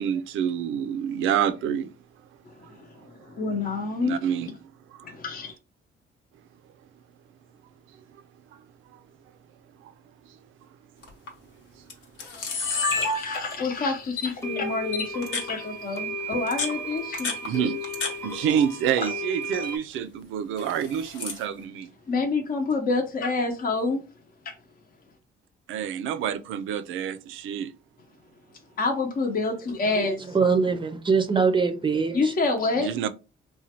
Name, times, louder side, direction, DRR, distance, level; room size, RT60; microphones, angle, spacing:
voice 1, 0.0-1.9 2.6-2.7 4.0-4.5 4.9-5.1 8.9-9.0 9.8-9.9 13.0-13.1 17.4-17.8 18.2-21.9 25.7-27.7 32.8-33.1, right 9 dB, 80° right, 0.4 m, -28 dB
voice 2, 2.5-4.2 5.0-5.6 12.9-17.7 19.0-19.1 22.1-24.0 24.4-24.5 28.8-30.4 32.1-32.9, left 3 dB, 45° left, 0.7 m, -28 dB
Camera, 11.0-11.3 11.9-12.0 12.2-13.7 14.2-14.3 14.9-15.5 16.3-18.1 18.4-19.1 19.4-19.8 20.6-21.4, left 3 dB, 85° left, 1.0 m, -30 dB
sound 1, 13.3-13.4 14.4-19.8, right 1 dB, 15° left, 0.8 m, -35 dB
voice 3, 30.2-32.3, right 5 dB, 25° right, 0.5 m, -23 dB
3.0 x 2.2 x 2.8 m
cardioid pair, 90°, 20 cm